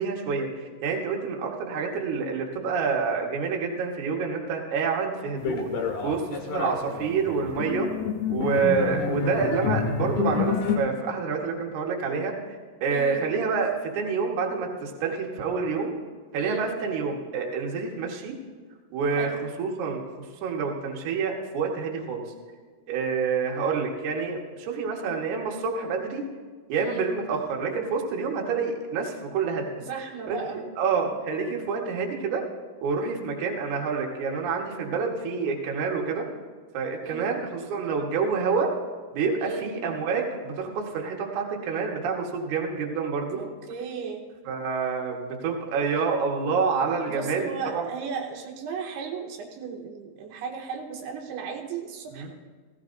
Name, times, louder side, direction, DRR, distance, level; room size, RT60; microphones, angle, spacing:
voice 1, 0.0-5.7 6.0-7.9 8.3-12.3 12.8-15.9 16.3-18.3 18.9-20.1 20.4-22.3 22.9-26.2 26.7-29.7 30.3-32.4 32.8-36.3 36.7-38.7 39.1-43.4 44.5-47.9 52.1-52.3, right 5 dB, 65° right, 0 dB, 2.3 m, -28 dB
sound 1, 5.4-10.8, left 6 dB, 65° left, 2.4 m, -28 dB
voice 2, 12.9-13.3 16.4-16.7 19.2-19.3 26.8-27.1 29.8-30.6 37.0-37.3 39.4-39.7 43.4-44.2 47.1-52.3, right 5 dB, 85° right, 2 dB, 3.0 m, -35 dB
16.5 x 15.5 x 2.6 m, 1.5 s
omnidirectional pair, 4.6 m